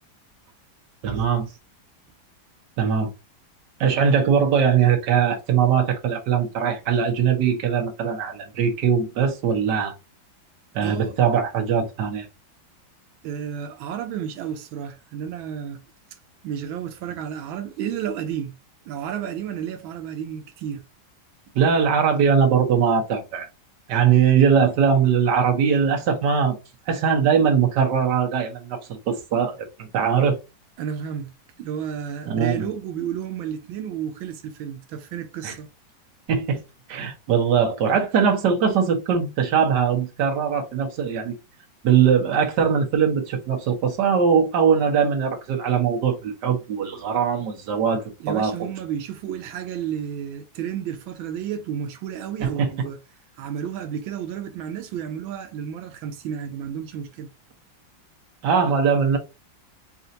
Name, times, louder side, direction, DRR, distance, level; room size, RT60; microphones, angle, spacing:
voice 1, 1.0-1.5 2.8-3.1 3.8-9.9 10.7-12.3 21.5-23.5 23.9-26.5 26.9-30.4 32.3-32.7 35.4-35.6 36.3-36.6 36.9-41.3 41.8-48.5 52.4-52.7 58.4-59.2, right 7 dB, 65° right, 1.6 m, -21 dB
voice 2, 10.8-11.1 13.2-15.8 16.4-18.5 18.9-20.8 30.8-31.3 31.6-35.7 48.2-53.0 53.4-57.3, right 8 dB, 90° right, 1.5 m, -32 dB
5.4 x 2.5 x 2.7 m
omnidirectional pair, 2.1 m